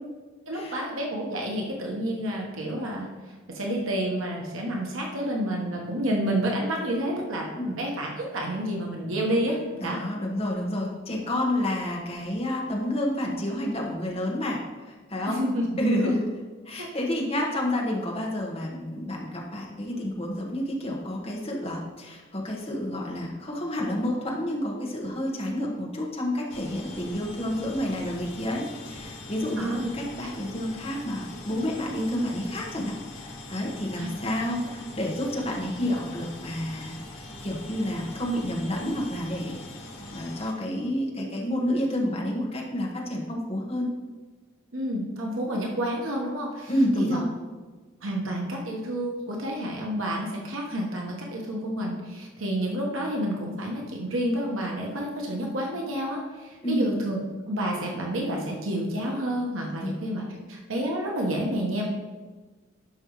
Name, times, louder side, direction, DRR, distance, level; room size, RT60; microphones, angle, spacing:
voice 1, 0.5-3.1 3.5-9.6 9.8-10.0 15.3-15.7 16.0-16.1 16.8-16.9 29.5-29.9 34.0-34.1 44.7-46.7 47.0-47.2 48.0-57.2 57.5-60.2 60.5-61.9, right 1 dB, 85° right, -1 dB, 1.3 m, -29 dB
voice 2, 9.8-14.6 14.9-15.4 15.8-16.3 16.6-36.9 37.4-39.5 40.1-43.9 46.7-47.3 56.6-56.9 59.8-59.9, left 1 dB, 30° left, -2 dB, 1.4 m, -29 dB
sound 1, 26.5-40.5, left 2 dB, 85° left, 2.0 m, -42 dB
12.0 x 5.4 x 3.2 m, 1.3 s
head